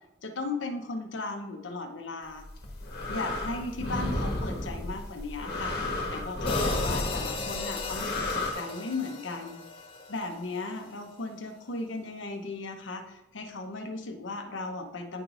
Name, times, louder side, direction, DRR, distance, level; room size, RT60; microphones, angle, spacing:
voice 1, 0.2-2.4 3.1-5.8 6.1-9.6 10.1-15.2, left 3 dB, 75° left, 5 dB, 0.9 m, -36 dB
sound 1, 2.4-8.5, left 2 dB, 50° left, 1.3 m, -32 dB
sound 2, 6.5-10.8, left 4 dB, 30° left, 0.6 m, -37 dB
9.8 x 4.8 x 2.6 m, 0.92 s
head